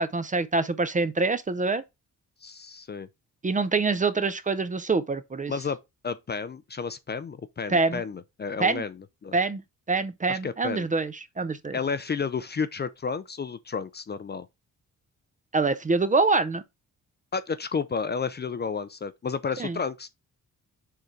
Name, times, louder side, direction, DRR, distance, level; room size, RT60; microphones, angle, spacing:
voice 1, 0.0-1.8 3.4-5.5 7.7-8.0 8.6-8.8 9.3-9.6 9.9-11.8 15.5-16.6 19.6-19.8, right 3 dB, 25° right, 0.5 m, -25 dB
voice 2, 2.4-3.1 5.5-5.8 6.0-8.9 9.2-9.3 10.3-10.9 11.7-14.5 17.3-20.1, left 5 dB, 30° left, 0.5 m, -31 dB
6.7 x 3.8 x 4.4 m
wide cardioid pair, 155°, 34 cm